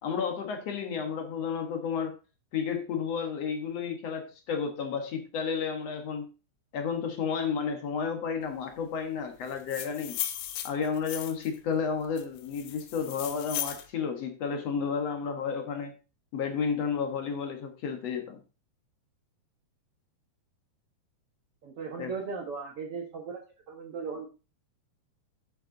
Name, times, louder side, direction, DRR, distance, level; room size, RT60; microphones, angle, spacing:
voice 1, 0.0-2.1 2.5-6.3 6.7-10.2 10.6-15.9 16.3-18.4 22.0-22.1, left 6 dB, 60° left, 5 dB, 1.8 m, -32 dB
sound 1, 9.5-11.6 12.2-13.9, left 11 dB, 80° left, 2.9 m, -36 dB
voice 2, 21.6-23.4 23.7-24.3, right 5 dB, 85° right, 1 dB, 1.2 m, -37 dB
9.8 x 7.5 x 3.9 m, 0.32 s
omnidirectional pair, 4.7 m